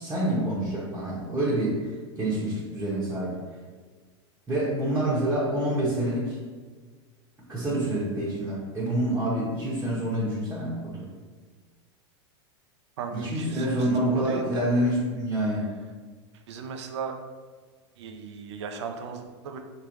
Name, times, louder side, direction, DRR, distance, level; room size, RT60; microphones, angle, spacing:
voice 1, 0.0-3.4 4.5-6.4 7.5-11.1 13.1-15.7, right 1 dB, 15° right, -7 dB, 1.2 m, -27 dB
voice 2, 13.0-14.7 16.3-17.2 18.0-19.6, right 5 dB, 75° right, 5 dB, 0.6 m, -36 dB
5.0 x 3.3 x 3.1 m, 1.5 s
hypercardioid pair, 110°, 15 cm